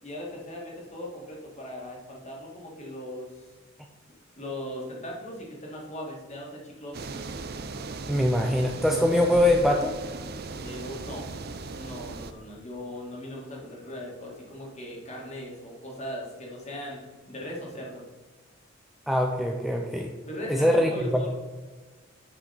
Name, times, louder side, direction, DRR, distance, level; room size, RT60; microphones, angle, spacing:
voice 1, 0.0-3.3 4.4-7.0 10.6-11.3 11.8-17.0 17.3-18.0 20.3-21.3, left 1 dB, 35° left, -2 dB, 2.1 m, -38 dB
sound 1, 6.9-12.3, right 3 dB, 50° right, 0.6 m, -38 dB
voice 2, 8.1-10.0 19.1-20.1 20.5-21.3, left 1 dB, ahead, 1 dB, 0.5 m, -23 dB
9.7 x 5.4 x 4.3 m, 1.3 s
head